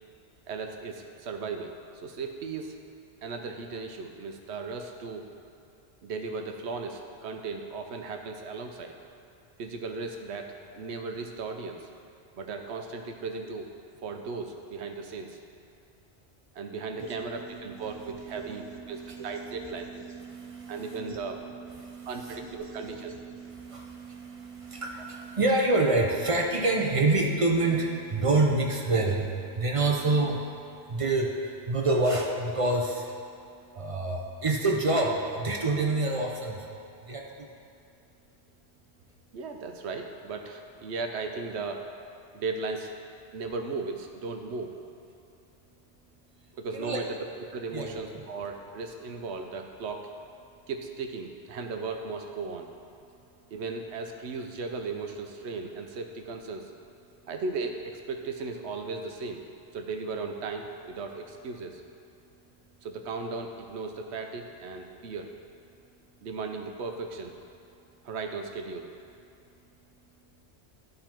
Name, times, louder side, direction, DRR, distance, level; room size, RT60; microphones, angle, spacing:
voice 1, 0.5-2.7 3.2-5.2 6.0-8.9 9.6-11.9 12.4-13.7 14.0-15.4 16.5-18.6 18.9-19.9 20.7-21.4 22.1-23.1 39.3-41.8 42.3-42.9 43.3-44.8 46.6-47.2 47.5-50.1 50.7-52.7 53.5-56.7 57.3-59.4 59.7-61.8 62.8-65.3 66.2-67.3 68.0-68.9, right 4 dB, 80° right, 4 dB, 1.0 m, -36 dB
voice 2, 17.0-37.5 46.7-47.0 47.7-48.2, right 2 dB, 40° right, 1 dB, 0.6 m, -28 dB
11.0 x 3.8 x 4.4 m, 2.6 s
omnidirectional pair, 1.1 m